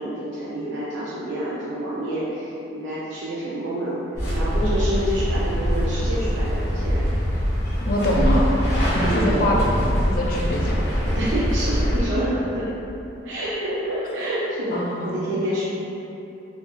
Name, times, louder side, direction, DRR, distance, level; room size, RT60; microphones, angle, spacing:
voice 1, 0.0-4.0 4.3-7.0 9.0-9.4 11.1-12.7 13.2-15.6, right 1 dB, 65° right, -9 dB, 0.4 m, -28 dB
sound 1, 4.1-12.0, equal, 10° left, 0.6 m, -23 dB
voice 2, 7.9-8.5 8.9-10.9 14.7-15.2, equal, 45° left, -2 dB, 0.3 m, -24 dB
2.3 x 2.3 x 2.9 m, 2.9 s
head